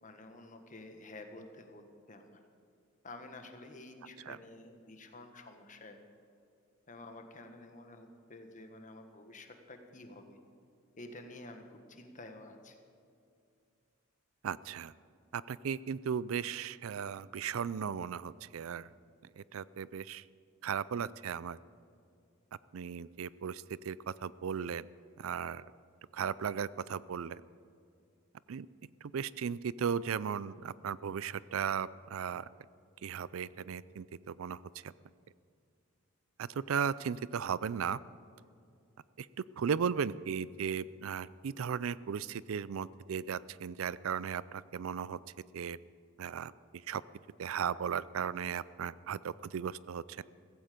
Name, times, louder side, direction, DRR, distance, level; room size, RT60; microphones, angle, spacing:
voice 1, 0.0-2.4 3.0-6.0 6.9-10.4 11.0-12.8, left 2 dB, 40° left, 6 dB, 1.5 m, -50 dB
voice 2, 14.4-14.9 15.3-18.9 19.4-20.2 20.6-21.6 22.7-24.9 25.2-25.6 26.1-27.4 28.5-28.7 29.1-32.5 33.0-34.9 36.4-38.0 39.2-39.3 39.6-45.2 45.5-45.8 46.2-46.5 46.9-47.0 47.4-50.2, right 7 dB, 75° right, 19 dB, 0.4 m, -36 dB
16.0 x 15.5 x 5.2 m, 2.4 s
head